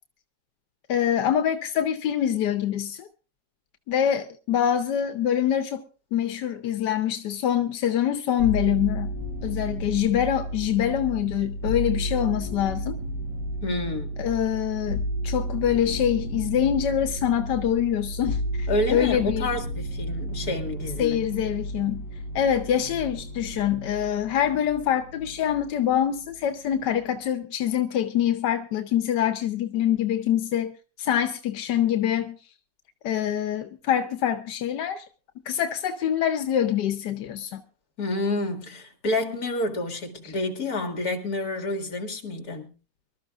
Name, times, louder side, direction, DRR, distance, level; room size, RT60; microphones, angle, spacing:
voice 1, 0.9-3.1 3.9-5.8 6.1-9.1 9.4-13.0 14.2-19.5 21.0-22.0 22.3-30.7 31.0-32.4 33.0-35.0 35.5-37.6, left 10 dB, 90° left, 1.5 m, -25 dB
sound 1, 8.4-25.8 26.1-26.9, equal, 75° right, 7.0 m, -32 dB
voice 2, 13.6-14.2 18.7-21.2 38.0-42.7, left 2 dB, 60° left, 2.6 m, -29 dB
25.0 x 13.0 x 2.4 m
omnidirectional pair, 1.8 m